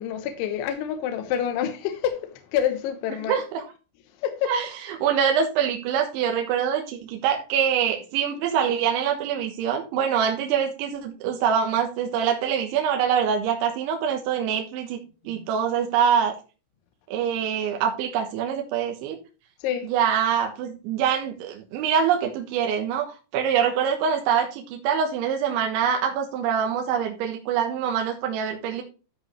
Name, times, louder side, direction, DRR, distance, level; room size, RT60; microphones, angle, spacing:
voice 1, 0.0-2.2 2.5-3.4 4.2-4.5 15.3-15.5 19.6-19.9, left 9 dB, 80° left, 3.3 m, -27 dB
voice 2, 3.1-3.7 4.5-15.0 15.3-16.3 17.1-19.2 19.8-23.1 23.3-28.8, right 8 dB, 75° right, 3.5 m, -24 dB
13.0 x 5.5 x 3.3 m
omnidirectional pair, 5.6 m